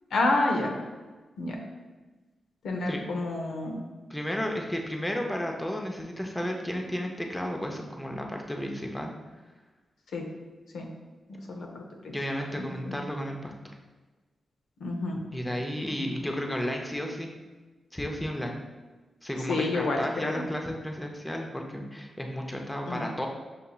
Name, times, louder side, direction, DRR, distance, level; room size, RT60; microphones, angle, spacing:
voice 1, 0.1-0.7 1.4-1.6 2.6-3.8 10.1-10.2 10.7-10.9 11.3-12.1 12.6-13.0 14.8-15.2 16.0-16.1 19.5-20.5 22.9-23.1, left 2 dB, 85° left, 1 dB, 0.6 m, -29 dB
voice 2, 4.1-9.1 12.1-13.5 15.3-17.3 17.9-18.6 19.2-23.3, equal, 10° left, 2 dB, 0.6 m, -33 dB
6.6 x 2.8 x 2.3 m, 1.3 s
cardioid pair, 65°, 0 cm